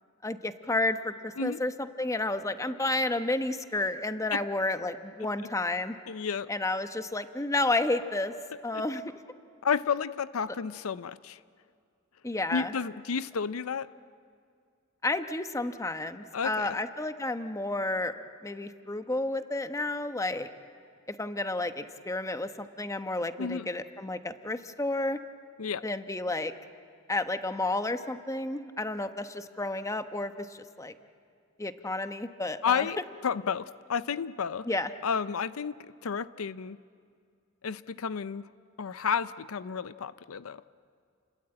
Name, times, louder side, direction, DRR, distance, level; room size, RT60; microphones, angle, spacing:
voice 1, 0.2-6.0 6.5-8.3 8.6-9.1 12.2-12.7 15.0-18.1 18.4-20.5 21.1-25.2 25.8-26.5 27.1-30.9 31.6-32.9 34.7-34.9, left 2 dB, 15° left, 9 dB, 1.0 m, -31 dB
voice 2, 6.1-6.5 8.7-9.0 9.6-11.4 12.5-13.9 16.3-16.8 23.4-23.7 25.6-25.8 32.6-34.7 35.0-36.8 37.6-38.4 38.8-40.6, left 6 dB, 80° left, 15 dB, 0.6 m, -31 dB
29.5 x 21.0 x 8.9 m, 2.3 s
head